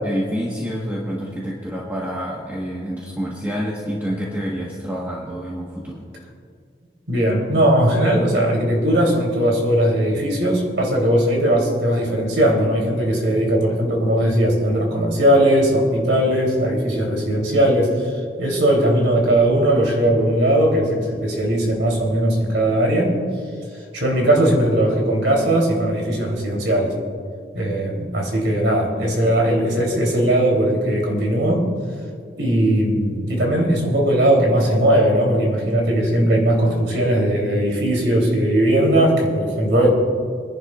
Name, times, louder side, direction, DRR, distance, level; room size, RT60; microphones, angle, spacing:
voice 1, 0.0-6.1, equal, 10° right, -5 dB, 1.3 m, -28 dB
voice 2, 7.1-23.2 23.9-26.9 27.5-31.7 32.4-39.9, right 1 dB, 80° right, -1 dB, 3.4 m, -19 dB
25.5 x 11.0 x 2.5 m, 2.2 s
head